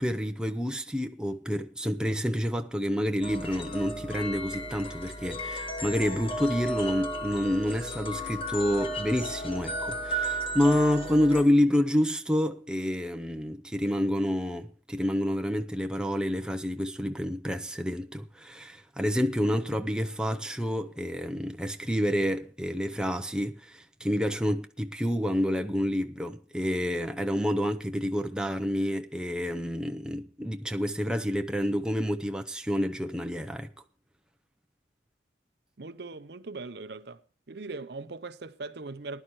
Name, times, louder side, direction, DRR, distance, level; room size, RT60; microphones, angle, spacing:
voice 1, 0.0-33.7, equal, 5° right, 0.6 m, -28 dB
sound 1, 3.2-11.4, right 1 dB, 30° left, 1.6 m, -34 dB
voice 2, 35.8-37.2 37.5-39.2, right 3 dB, 55° right, 0.6 m, -40 dB
19.5 x 11.5 x 3.1 m
head